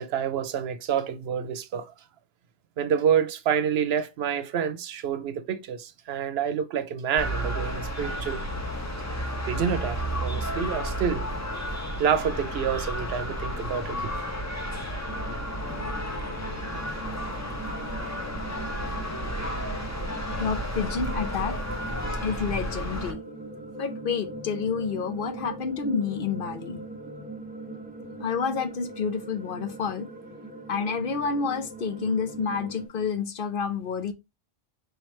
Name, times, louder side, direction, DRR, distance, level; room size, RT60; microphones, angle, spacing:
voice 1, 0.0-1.9 2.8-8.4 9.5-10.0 10.2-11.3 12.0-14.1, right 7 dB, 80° right, 0.8 m, -28 dB
sound 1, 7.2-23.1, equal, 15° left, 0.8 m, -32 dB
sound 2, 15.1-32.9, right 2 dB, 10° right, 0.5 m, -41 dB
voice 2, 20.4-21.5 22.2-23.2 23.8-26.8 28.2-30.1 30.7-34.1, left 5 dB, 60° left, 0.8 m, -29 dB
4.7 x 3.1 x 3.1 m
omnidirectional pair, 1.0 m